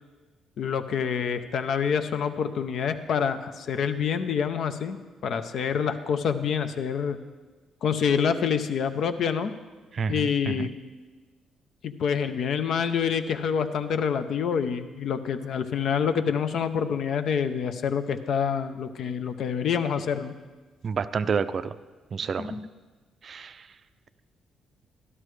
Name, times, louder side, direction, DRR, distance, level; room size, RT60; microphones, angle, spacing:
voice 1, 0.6-7.2 7.8-9.5 10.1-10.7 11.8-20.3 22.4-22.6, left 7 dB, 65° left, 10 dB, 0.6 m, -27 dB
voice 2, 9.9-10.7 20.8-21.7 22.1-22.6 23.2-23.7, right 6 dB, 50° right, 13 dB, 0.4 m, -29 dB
12.5 x 12.0 x 3.2 m, 1.3 s
cardioid pair, 90°, 0 cm